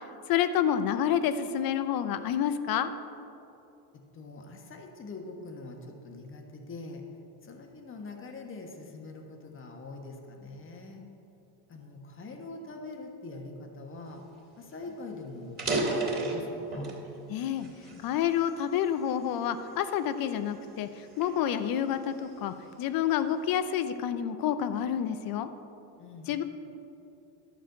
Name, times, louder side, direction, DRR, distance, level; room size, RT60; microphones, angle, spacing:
voice 1, 0.3-2.9 17.3-17.7 18.0-20.9 21.2-25.5 26.3-26.4, left 9 dB, 50° left, 11 dB, 0.7 m, -28 dB
voice 2, 3.9-7.1 7.4-11.1 11.7-14.2 14.6-16.9 26.0-26.3, left 3 dB, 25° left, 2 dB, 1.4 m, -43 dB
sound 1, 14.4-14.5 14.8-14.9 15.4-17.1 17.6-18.9 19.5-19.7 20.3-22.4, right 2 dB, 20° right, 2.5 m, -33 dB
12.0 x 4.9 x 7.7 m, 2.8 s
supercardioid pair, 115°, 46 cm